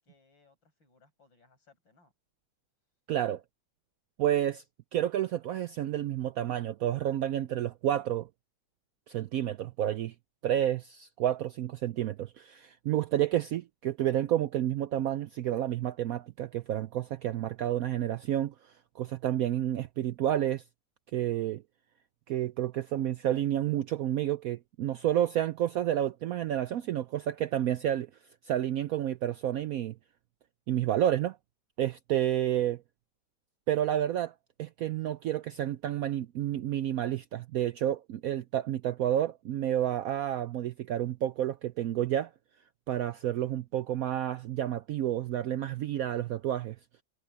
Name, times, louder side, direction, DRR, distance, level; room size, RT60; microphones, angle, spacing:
voice 1, 0.0-2.1, left 4 dB, 85° left, 9.0 m, -65 dB
voice 2, 3.1-3.4 4.2-4.6 4.9-8.3 9.1-10.1 10.4-20.6 21.1-21.6 22.3-28.1 28.4-30.0 30.7-31.4 31.8-32.8 33.7-34.3 34.6-42.3 42.9-46.8, right 11 dB, 75° right, 0.8 m, -30 dB
omnidirectional pair, 2.0 m